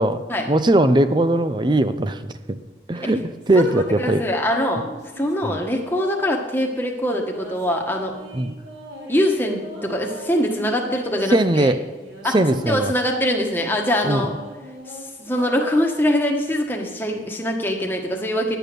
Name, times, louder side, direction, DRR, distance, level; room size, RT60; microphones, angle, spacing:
voice 1, 0.0-2.2 2.9-4.2 5.4-5.6 8.3-8.5 11.3-11.8 12.3-12.9 14.0-14.3, right 1 dB, 25° right, 11 dB, 0.5 m, -19 dB
sound 1, 3.4-6.5 7.1-11.3 11.9-16.6, equal, 80° right, 3.8 m, -39 dB
voice 2, 4.0-4.9 5.2-8.1 9.1-11.7 12.2-12.4 12.6-14.3 14.9-18.6, equal, 10° left, 1 dB, 1.3 m, -23 dB
10.5 x 7.9 x 6.7 m, 1.2 s
head